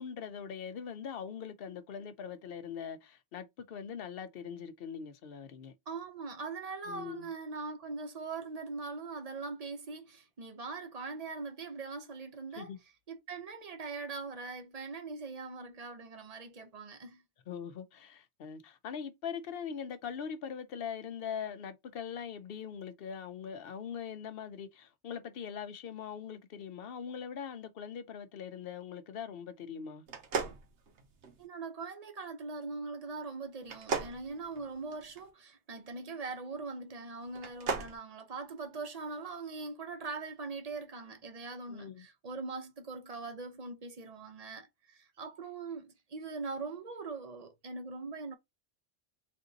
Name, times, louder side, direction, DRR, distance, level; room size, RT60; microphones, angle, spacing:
voice 1, 0.0-5.7 6.9-7.3 12.6-12.8 17.5-30.1 41.7-42.1, left 7 dB, 60° left, 0.8 m, -42 dB
voice 2, 5.9-12.7 13.1-17.2 31.4-48.3, right 4 dB, 40° right, 0.7 m, -41 dB
sound 1, 30.1-31.4 33.6-35.2 37.3-38.0, right 4 dB, 80° right, 1.1 m, -36 dB
3.7 x 2.6 x 3.9 m
omnidirectional pair, 1.2 m